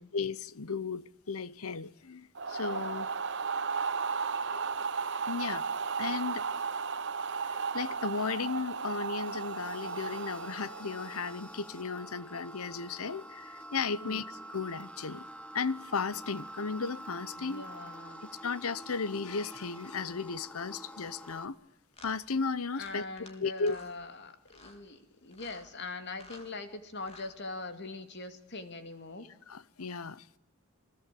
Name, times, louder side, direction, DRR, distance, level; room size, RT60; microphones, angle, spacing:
voice 1, 0.1-3.1 5.3-5.7 6.0-6.4 7.7-15.2 15.5-17.6 18.4-21.6 22.0-23.0 23.4-23.8 29.5-30.2, left 5 dB, 85° left, 0.9 m, -35 dB
sound 1, 2.3-11.4, right 5 dB, 60° right, 1.2 m, -35 dB
sound 2, 9.2-21.5, right 1 dB, 5° left, 1.4 m, -47 dB
voice 2, 17.3-18.2 22.7-29.3, left 3 dB, 55° left, 2.5 m, -42 dB
sound 3, 21.2-21.4 21.9-22.2 22.8-23.3 23.6-23.9 24.5-24.8 25.3-25.7 26.1-26.5 27.0-27.3, left 2 dB, 30° left, 3.8 m, -53 dB
29.5 x 19.5 x 8.5 m
head